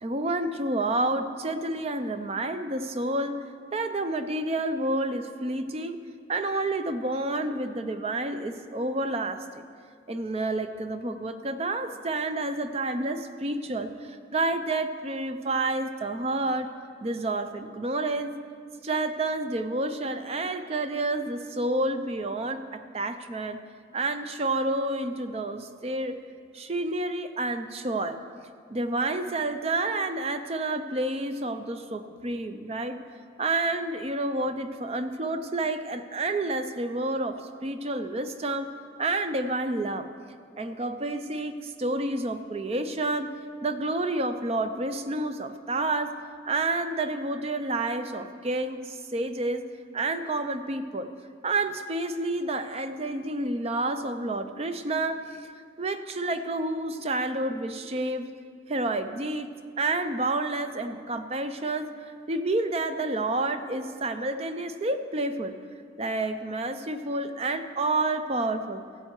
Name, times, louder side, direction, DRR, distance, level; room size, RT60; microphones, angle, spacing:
voice 1, 0.0-3.4 3.7-6.0 6.3-9.4 10.1-16.7 17.0-18.4 18.8-23.6 23.9-26.2 26.5-28.2 28.7-33.0 33.4-38.7 39.0-40.1 40.6-43.3 43.6-46.1 46.5-49.7 49.9-51.1 51.4-55.5 55.8-58.3 58.7-59.5 59.8-61.9 62.3-65.5 66.0-68.8, right 2 dB, 35° right, 9 dB, 0.5 m, -29 dB
16.0 x 7.8 x 4.6 m, 2.2 s
head